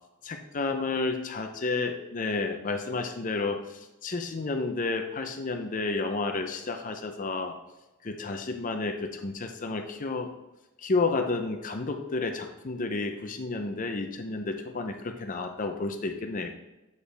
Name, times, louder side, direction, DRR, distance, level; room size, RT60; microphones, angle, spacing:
voice 1, 0.2-7.5 8.0-10.3 10.8-16.5, left 3 dB, 35° left, 6 dB, 0.6 m, -31 dB
8.1 x 5.1 x 3.3 m, 0.99 s
head